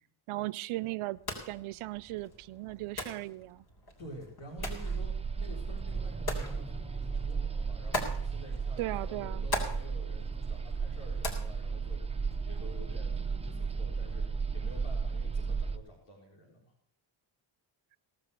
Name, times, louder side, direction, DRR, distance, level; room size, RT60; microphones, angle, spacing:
voice 1, 0.3-1.2 1.5-3.7 8.8-9.5, right 18 dB, 80° right, 0.6 m, -37 dB
sound 1, 1.1-12.6, left 1 dB, 50° left, 3.7 m, -42 dB
voice 2, 4.0-12.0 12.4-14.3 14.5-16.6, equal, 85° left, 4.1 m, -49 dB
sound 2, 4.6-15.8, right 5 dB, 10° right, 0.8 m, -34 dB
17.5 x 6.9 x 6.7 m
cardioid pair, 80°, 50 cm